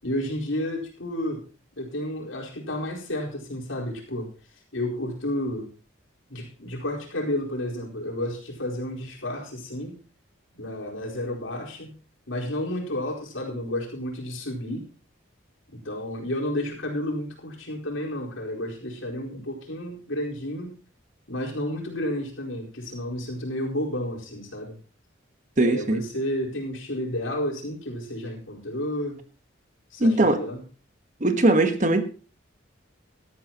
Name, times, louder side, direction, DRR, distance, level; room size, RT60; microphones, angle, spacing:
voice 1, 0.0-1.4 1.8-4.3 4.7-5.7 6.3-10.0 10.5-11.9 12.3-14.9 15.8-20.8 21.3-24.8 25.6-29.2 29.9-30.7, left 1 dB, 80° left, -1 dB, 4.5 m, -31 dB
voice 2, 25.6-26.0 30.0-30.4 31.2-32.0, right 2 dB, 40° right, 8 dB, 1.3 m, -20 dB
17.5 x 12.5 x 3.0 m, 0.35 s
head